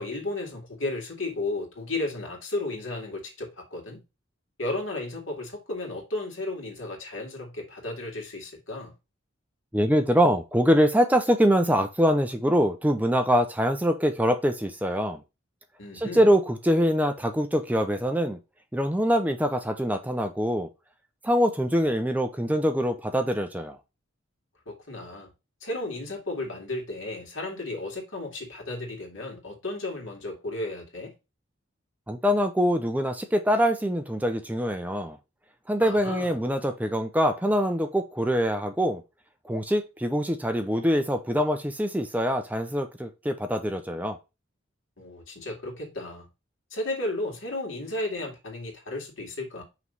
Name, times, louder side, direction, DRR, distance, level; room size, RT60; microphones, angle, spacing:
voice 1, 0.0-4.0 4.6-8.9 15.8-16.3 24.7-25.3 25.6-31.1 35.8-36.4 45.0-46.3 46.7-49.6, left 2 dB, 80° left, 2.3 m, -34 dB
voice 2, 9.7-15.2 15.9-18.4 18.7-20.7 21.2-23.8 32.1-35.2 35.7-39.0 39.5-44.2, equal, 10° right, 0.5 m, -24 dB
5.8 x 3.2 x 5.4 m
head